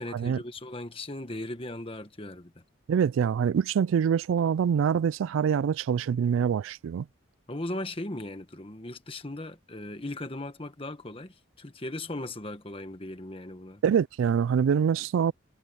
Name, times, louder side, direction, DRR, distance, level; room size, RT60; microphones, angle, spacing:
voice 1, 0.0-2.6 7.5-13.8, left 1 dB, 25° left, 1.4 m, -38 dB
voice 2, 2.9-7.1 13.8-15.3, right 7 dB, 75° right, 0.3 m, -25 dB
head